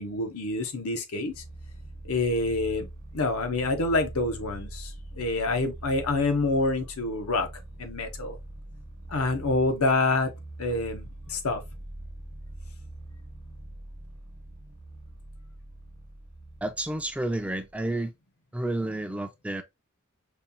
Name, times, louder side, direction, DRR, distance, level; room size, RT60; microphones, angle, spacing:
voice 1, 0.0-1.4 2.0-2.9 3.1-7.5 7.8-8.4 9.1-10.3 10.6-11.6, left 2 dB, 90° left, 0.8 m, -27 dB
sound 1, 1.3-18.0, right 1 dB, 55° right, 0.9 m, -43 dB
voice 2, 16.6-18.1 18.5-19.6, right 1 dB, 5° right, 0.3 m, -30 dB
5.3 x 2.3 x 2.6 m
head